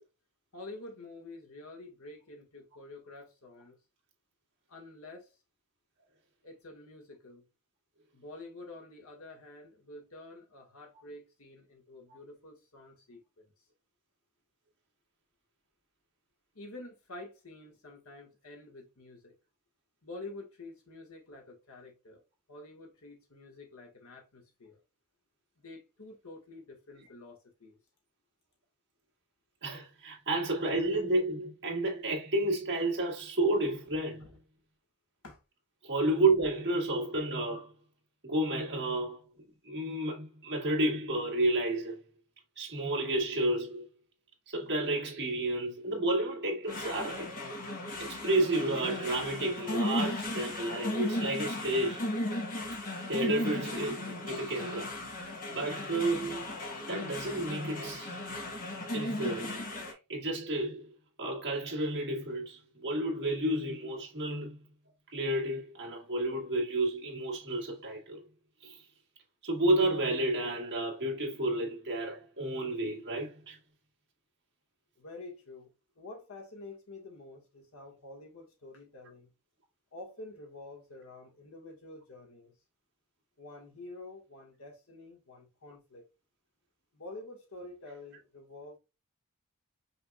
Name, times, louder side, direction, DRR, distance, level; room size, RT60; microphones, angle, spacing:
voice 1, 0.5-3.8 4.7-5.4 6.4-7.5 8.1-13.5 16.5-19.3 20.0-22.2 22.5-24.8 25.6-27.8 34.2-34.3 35.2-35.4 75.0-75.7 75.9-79.3 79.9-82.5 83.4-86.0 86.9-88.8, left 2 dB, 65° left, 1.5 m, -48 dB
voice 2, 29.6-34.3 35.8-37.7 38.2-39.2 39.6-42.0 42.6-43.9 44.5-47.4 48.0-52.0 53.1-55.0 55.5-56.5 56.9-58.1 58.9-59.6 60.1-60.9 61.2-64.6 65.1-68.2 68.6-68.8 69.4-73.6, right 1 dB, 50° right, 1.8 m, -31 dB
sound 1, 46.7-59.9, left 1 dB, 40° left, 1.3 m, -36 dB
5.6 x 3.5 x 2.3 m
head